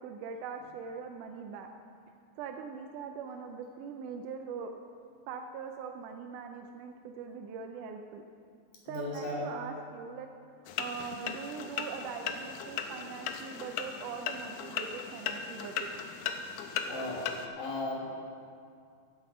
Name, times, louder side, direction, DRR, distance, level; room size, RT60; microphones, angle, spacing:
voice 1, 0.0-1.7 2.4-4.7 5.3-8.2 8.9-10.3 10.8-15.9, right 6 dB, 85° right, 4 dB, 1.8 m, -41 dB
voice 2, 8.9-9.5 16.9-18.1, left 2 dB, 65° left, -3 dB, 2.9 m, -36 dB
sound 1, 10.7-17.5, left 7 dB, 80° left, 1.8 m, -37 dB
13.0 x 8.4 x 5.0 m, 2.3 s
omnidirectional pair, 4.2 m